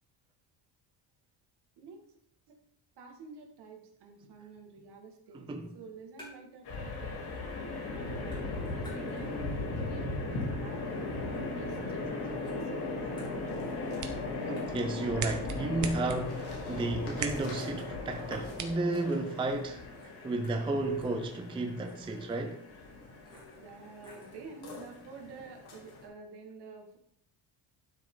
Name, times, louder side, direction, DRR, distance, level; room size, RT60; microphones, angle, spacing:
voice 1, 3.0-5.4 5.7-7.5 7.9-12.0 12.4-13.7 23.2-27.0, right 4 dB, 65° right, 2.1 m, -49 dB
voice 2, 5.3-5.7 14.5-19.8 20.2-22.6, right 2 dB, 10° right, 0.5 m, -33 dB
sound 1, 5.7-6.7 7.0-7.7 7.9-9.5 9.9-12.1 12.5-13.9 14.2-14.3 14.6-24.4, left 2 dB, 10° left, 3.0 m, -58 dB
sound 2, 6.6-26.1, left 2 dB, 60° left, 3.1 m, -38 dB
sound 3, 13.7-19.6, right 6 dB, 40° right, 1.0 m, -43 dB
12.0 x 6.6 x 3.9 m
cardioid pair, 180°, 44 cm